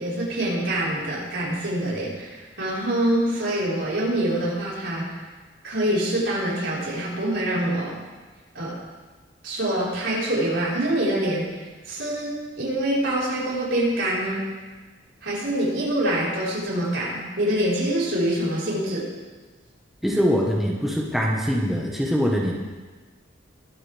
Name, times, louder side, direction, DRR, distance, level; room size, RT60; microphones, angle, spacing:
voice 1, 0.0-5.1 5.6-7.9 8.5-8.8 9.4-11.4 11.9-14.4 15.2-19.0, right 1 dB, 80° right, -7 dB, 4.9 m, -25 dB
voice 2, 20.0-22.5, equal, ahead, -3 dB, 1.5 m, -23 dB
22.0 x 8.3 x 3.6 m, 1.3 s
head